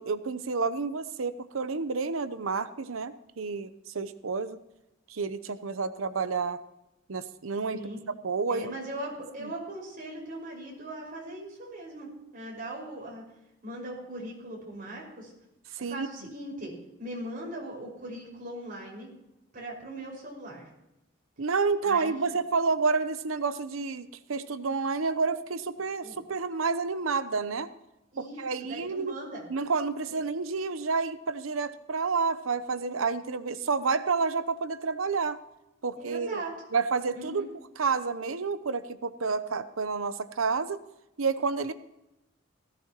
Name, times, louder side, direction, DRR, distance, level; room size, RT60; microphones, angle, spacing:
voice 1, 0.0-3.7 3.9-4.6 5.1-6.6 7.1-7.8 8.2-8.7 9.4-9.5 15.7-16.1 21.4-27.7 28.2-29.2 29.5-35.4 35.8-36.4 36.7-37.5 37.8-40.8 41.2-41.7, right 4 dB, 85° right, 12 dB, 0.8 m, -29 dB
voice 2, 8.5-12.1 12.3-13.2 13.6-15.3 15.8-16.7 17.0-19.1 19.5-20.7 21.8-22.3 26.0-26.2 28.1-29.4 30.1-30.2 36.0-36.5 37.1-37.5, right 1 dB, 45° right, -2 dB, 5.4 m, -40 dB
18.0 x 16.0 x 3.0 m, 0.91 s
head